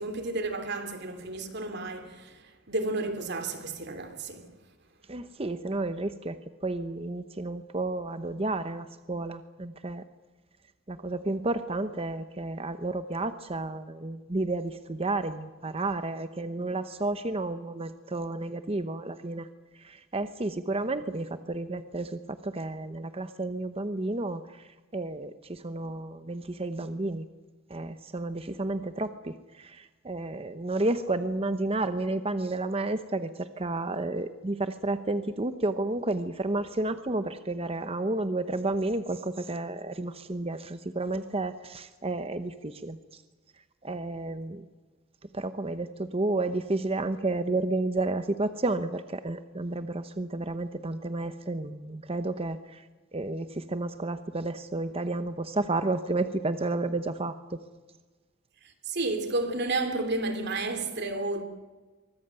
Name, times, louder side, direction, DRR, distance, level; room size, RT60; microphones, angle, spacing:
voice 1, 0.0-2.4 2.7-4.5 58.8-61.4, right 2 dB, 55° right, 2.9 m, -31 dB
voice 2, 5.1-10.0 10.9-19.5 19.7-27.3 27.7-43.2 43.8-44.7 45.3-52.9 53.1-57.6, right 2 dB, 30° right, 0.9 m, -31 dB
24.0 x 19.0 x 9.0 m
head